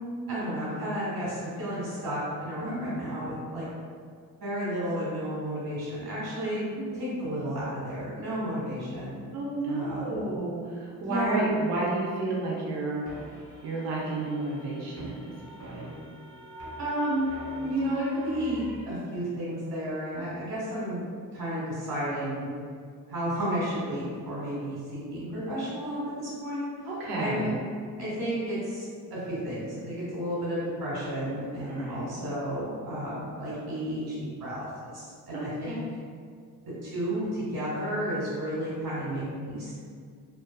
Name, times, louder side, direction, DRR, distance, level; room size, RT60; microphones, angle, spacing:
voice 1, 0.3-3.7 4.4-6.7 6.9-9.2 9.7-10.2 11.0-11.5 15.2-15.3 16.8-17.2 17.6-21.0 21.3-22.5 23.1-26.6 27.2-27.5 28.0-34.7 34.9-35.8 36.8-39.7, right 1 dB, 65° right, -9 dB, 1.3 m, -32 dB
voice 2, 2.6-3.4 6.8-7.3 9.3-13.0 13.6-15.3 15.6-15.9 26.8-27.6 31.6-32.3 35.3-35.9, right 2 dB, 90° right, -4 dB, 0.6 m, -32 dB
sound 1, 13.1-18.8, right 1 dB, 40° right, 0.9 m, -45 dB
2.7 x 2.3 x 2.3 m, 2.1 s
supercardioid pair, 60°, 38 cm